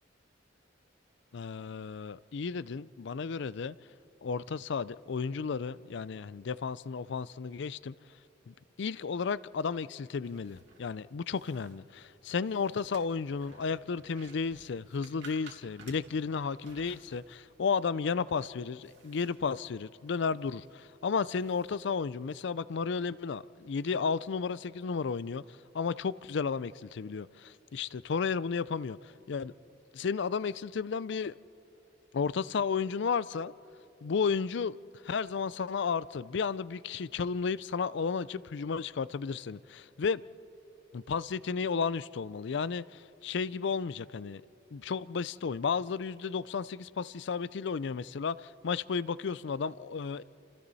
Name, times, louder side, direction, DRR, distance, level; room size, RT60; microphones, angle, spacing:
voice 1, 1.3-3.8 4.2-7.9 8.5-25.4 25.7-29.0 29.3-29.5 29.9-31.3 32.1-33.5 34.0-34.8 35.0-40.2 40.9-44.4 44.7-50.2, left 5 dB, 65° left, 0.4 m, -33 dB
sound 1, 10.2-22.3, right 4 dB, 75° right, 2.9 m, -58 dB
29.5 x 28.5 x 4.1 m
head